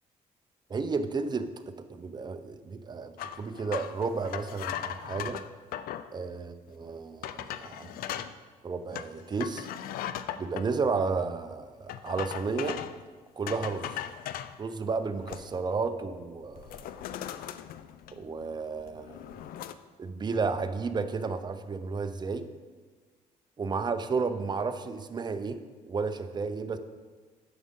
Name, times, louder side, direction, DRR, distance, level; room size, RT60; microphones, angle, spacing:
voice 1, 0.7-1.5 1.9-5.4 6.1-8.0 8.6-9.7 10.4-12.8 13.4-14.0 14.6-17.2 18.1-19.2 20.0-22.4 23.6-25.6 25.9-26.8, right 4 dB, 30° right, 9 dB, 0.6 m, -32 dB
sound 1, 3.2-6.1 6.7-6.8 7.2-8.3 8.9-10.7 11.9-13.0 13.5-14.5 15.0-15.7 16.0-16.2 16.5-18.4 18.8-19.7, left 11 dB, 80° left, 0.4 m, -38 dB
9.5 x 6.4 x 3.7 m, 1.4 s
cardioid pair, 100°, 15 cm